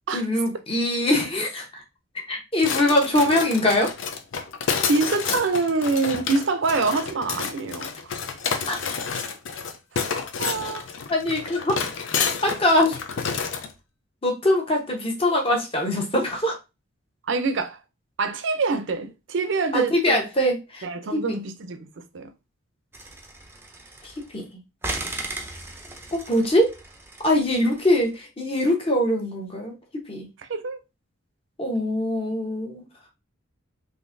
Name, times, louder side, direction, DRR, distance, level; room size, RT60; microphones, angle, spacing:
voice 1, 0.1-1.8 2.1-3.9 8.7-8.8 11.1-11.8 12.4-13.0 14.2-16.6 19.7-20.9 21.1-21.4 24.0-24.5 26.1-26.8 27.2-30.3 31.6-32.8, left 1 dB, 30° left, 0.9 m, -23 dB
sound 1, 2.6-13.7, left 6 dB, 70° left, 0.5 m, -29 dB
voice 2, 4.8-8.1 10.4-10.9 17.3-17.8 18.2-20.2 20.8-22.3 30.5-30.8, right 3 dB, 65° right, 0.5 m, -25 dB
sound 2, 22.9-24.4 24.8-28.1, right 2 dB, 10° right, 0.5 m, -36 dB
3.8 x 2.7 x 2.6 m
head